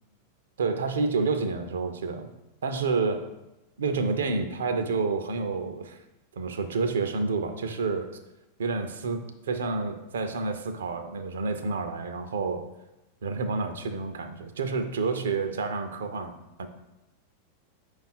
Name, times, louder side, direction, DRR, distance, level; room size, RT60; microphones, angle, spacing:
voice 1, 0.6-2.3 2.6-3.3 3.8-6.0 6.4-8.1 8.6-12.7 13.2-16.7, right 4 dB, 65° right, 8 dB, 0.4 m, -29 dB
5.2 x 2.4 x 4.2 m, 0.96 s
figure-of-eight pair, 90°, 0 cm